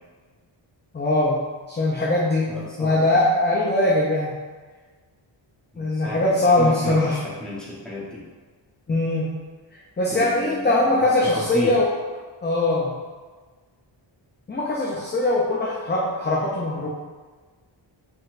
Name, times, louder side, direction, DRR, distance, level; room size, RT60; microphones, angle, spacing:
voice 1, 0.9-1.4 1.7-2.5 2.8-4.3 5.8-7.2 8.9-9.3 10.0-11.9 12.4-12.9 14.5-16.9, left 2 dB, 25° left, -4 dB, 0.5 m, -21 dB
voice 2, 2.5-3.0 5.7-8.2 10.1-11.0 11.3-11.8, left 1 dB, ahead, -7 dB, 0.9 m, -33 dB
5.1 x 4.0 x 2.5 m, 1.4 s
wide cardioid pair, 175°, 48 cm